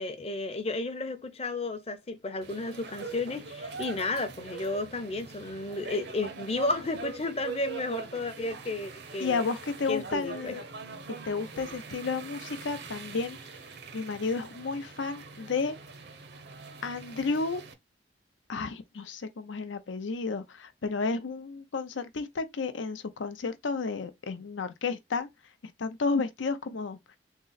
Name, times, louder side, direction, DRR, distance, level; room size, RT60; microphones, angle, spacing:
voice 1, 0.0-9.4 9.9-10.6, left 2 dB, 35° left, 0.6 m, -33 dB
sound 1, 2.4-17.7, right 4 dB, 60° right, 0.6 m, -43 dB
voice 2, 9.2-10.6 11.1-13.5 13.9-15.8 16.8-17.6 18.5-25.3 25.6-27.2, left 4 dB, 85° left, 0.6 m, -32 dB
3.7 x 2.0 x 3.9 m
head